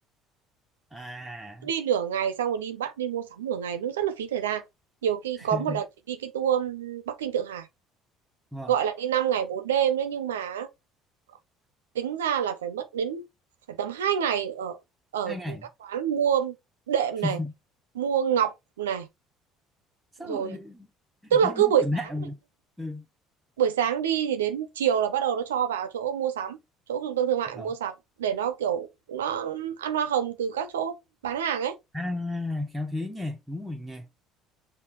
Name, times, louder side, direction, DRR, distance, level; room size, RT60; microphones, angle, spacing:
voice 1, 0.9-1.7 5.4-5.8 8.5-8.7 15.3-15.7 17.2-17.5 20.2-20.9 21.2-22.4 22.8-23.0 27.6-27.7 31.9-34.1, left 2 dB, 5° right, 0.6 m, -33 dB
voice 2, 1.6-4.6 5.0-7.7 8.7-10.7 11.9-13.2 13.7-14.8 15.1-16.6 16.9-17.4 17.9-19.1 20.2-20.6 21.3-21.8 23.6-26.6 26.9-27.9 28.2-31.0 31.2-31.8, right 9 dB, 85° right, 0.4 m, -27 dB
5.6 x 2.0 x 2.9 m
hypercardioid pair, 60°, 0 cm